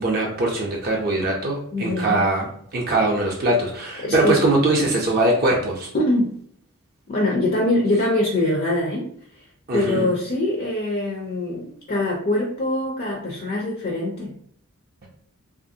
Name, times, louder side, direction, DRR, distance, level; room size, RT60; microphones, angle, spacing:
voice 1, 0.0-5.9 9.7-10.1, right 2 dB, 40° right, -2 dB, 0.5 m, -21 dB
voice 2, 1.7-2.2 4.0-4.4 5.9-6.3 7.1-9.1 9.3-9.5 9.7-14.3, left 1 dB, 40° left, -1 dB, 0.4 m, -23 dB
2.9 x 2.4 x 2.6 m, 0.64 s
head